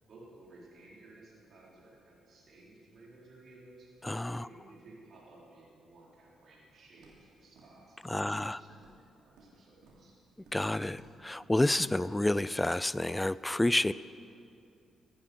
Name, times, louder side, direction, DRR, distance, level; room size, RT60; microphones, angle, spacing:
voice 1, 0.0-3.9 4.3-8.7 9.0-10.2, right 2 dB, 55° right, -5 dB, 4.1 m, -56 dB
voice 2, 4.0-4.5 8.1-8.6 10.5-13.9, left 1 dB, 15° left, 18 dB, 0.4 m, -29 dB
Walk footsteps, 7.0-7.3 7.6-8.5 8.7-9.5 9.8-10.1 10.4-10.7 10.9-11.2 11.4-11.7 12.0-12.2, right 3 dB, 75° right, 2.8 m, -59 dB
15.5 x 10.0 x 6.2 m, 2.6 s
hypercardioid pair, 45°, 0 cm